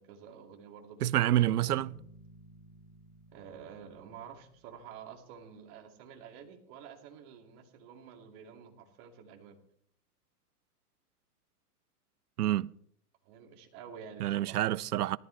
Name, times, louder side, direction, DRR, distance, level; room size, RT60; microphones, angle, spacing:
voice 1, 0.0-1.9 3.3-9.6 13.2-14.6, right 7 dB, 40° right, 2.5 m, -50 dB
voice 2, 1.0-1.9 12.4-12.7 14.2-15.2, right 13 dB, 85° right, 0.6 m, -27 dB
Bass guitar, 1.3-5.0, right 2 dB, 45° left, 7.0 m, -55 dB
18.5 x 13.5 x 3.3 m
hypercardioid pair, 135°, 45 cm